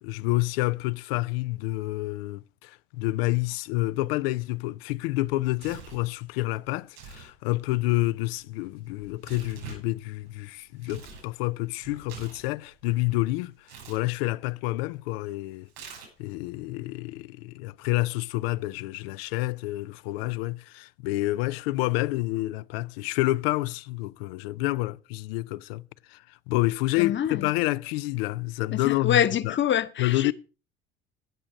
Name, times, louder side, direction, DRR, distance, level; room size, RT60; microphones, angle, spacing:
voice 1, 0.0-13.5 13.9-15.7 16.2-25.9 26.1-29.5 30.0-30.3, left 19 dB, 75° left, 0.5 m, -28 dB
Tearing, 5.2-6.1 6.8-7.3 7.6-11.3 11.6-13.1 13.6-14.0 15.7-16.3, right 6 dB, 80° right, 7.5 m, -45 dB
voice 2, 27.0-27.5 28.7-30.3, left 10 dB, 40° left, 1.0 m, -26 dB
17.0 x 6.3 x 5.0 m
hypercardioid pair, 70°, 30 cm